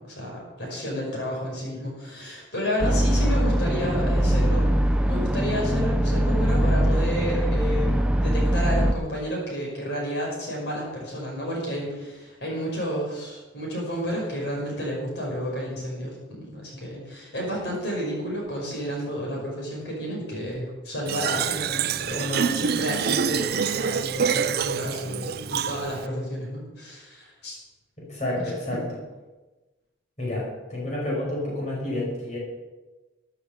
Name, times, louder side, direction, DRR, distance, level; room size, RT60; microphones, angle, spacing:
voice 1, 0.0-4.7 5.0-27.6 28.7-28.8, equal, 60° left, -3 dB, 5.4 m, -31 dB
sound 1, 2.8-8.9, equal, 5° right, 0.6 m, -22 dB
Fill (with liquid), 21.1-26.1, right 7 dB, 50° right, 0.4 m, -26 dB
voice 2, 28.0-28.8 30.2-32.4, left 1 dB, 35° left, -5 dB, 5.5 m, -29 dB
14.5 x 8.4 x 8.0 m, 1.2 s
head